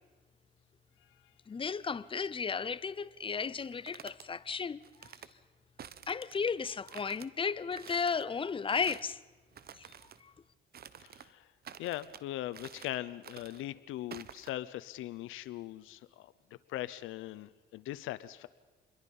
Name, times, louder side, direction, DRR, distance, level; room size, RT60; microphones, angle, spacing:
voice 1, 1.5-5.1 6.1-9.2 9.8-9.9 10.2-10.3, left 5 dB, 25° left, 0.7 m, -34 dB
sound 1, 3.6-4.3 4.8-5.3 5.8-6.5 6.9-7.3 7.7-8.2 8.7-9.1 9.5-10.2 10.7-11.3 11.6-12.2 12.5-13.0 13.2-13.6 14.1-14.5, right 8 dB, 50° right, 1.0 m, -50 dB
voice 2, 11.0-11.5 11.8-16.3 16.7-18.5, left 14 dB, 90° left, 0.7 m, -40 dB
27.5 x 22.0 x 5.5 m
cardioid pair, 90°, 20 cm